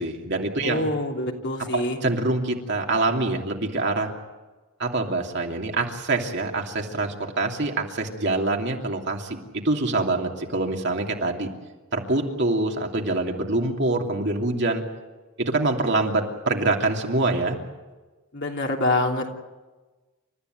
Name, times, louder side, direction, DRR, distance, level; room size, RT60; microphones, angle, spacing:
voice 1, 0.0-0.9 1.7-4.1 4.8-11.5 11.9-14.8 15.4-17.6, right 2 dB, 55° right, 1 dB, 2.9 m, -25 dB
voice 2, 0.6-2.0 18.3-19.3, left 2 dB, 55° left, 1 dB, 3.1 m, -25 dB
29.5 x 14.0 x 9.5 m, 1.2 s
head